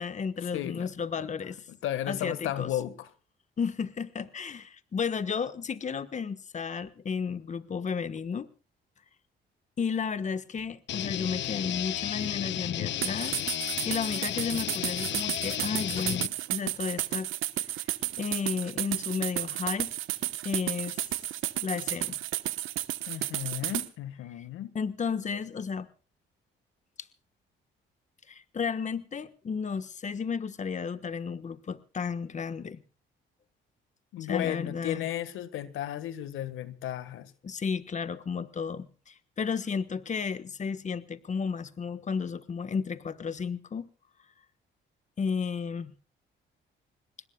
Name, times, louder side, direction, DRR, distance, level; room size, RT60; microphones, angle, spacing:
voice 1, 0.0-1.7 2.1-2.7 3.6-8.5 9.8-17.3 18.2-19.9 20.4-21.1 21.6-22.2 24.4-24.5 24.7-25.9 27.0-27.1 28.3-32.8 34.3-35.0 37.4-43.9 45.2-45.9, left 6 dB, 35° left, 1.3 m, -33 dB
voice 2, 0.5-0.9 1.2-1.3 1.7-3.1 23.1-24.7 34.1-37.3, left 12 dB, 90° left, 1.6 m, -34 dB
sound 1, 10.9-16.3, left 12 dB, 65° left, 0.7 m, -33 dB
sound 2, 13.0-23.9, right 15 dB, 90° right, 1.2 m, -32 dB
26.0 x 20.5 x 2.3 m
cardioid pair, 90°, 20 cm